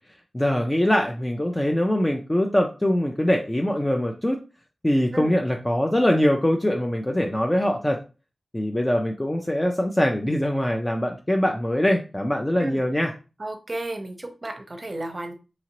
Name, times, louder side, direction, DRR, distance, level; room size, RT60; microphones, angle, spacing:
voice 1, 0.3-4.4 4.8-8.0 8.5-13.1, left 1 dB, 20° left, 2 dB, 0.4 m, -23 dB
voice 2, 13.4-15.3, right 1 dB, 45° right, 6 dB, 0.7 m, -33 dB
2.8 x 2.7 x 2.9 m, 0.31 s
wide cardioid pair, 60°, 0 cm